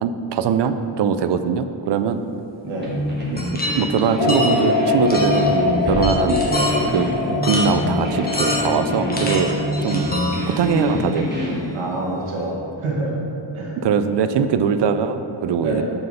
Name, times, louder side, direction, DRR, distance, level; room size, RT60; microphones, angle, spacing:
voice 1, 0.0-2.2 3.3-3.4 3.7-6.4 6.9-7.1 7.4-10.1 10.5-11.3 13.8-15.8, right 6 dB, 60° right, 10 dB, 0.5 m, -21 dB
sound 1, 2.8-11.7, left 1 dB, 20° right, 1.6 m, -26 dB
sound 2, 3.4-4.6 5.1-5.5 5.9-6.8 7.4-7.7 8.2-8.8 9.1-10.8, left 1 dB, 20° left, 1.1 m, -26 dB
sound 3, 4.2-10.1, left 3 dB, 60° left, 0.9 m, -24 dB
voice 2, 11.7-13.1 13.5-13.8 15.6-15.8, right 2 dB, 80° right, -3 dB, 1.6 m, -26 dB
6.4 x 4.6 x 5.5 m, 2.9 s
cardioid pair, 115°, 49 cm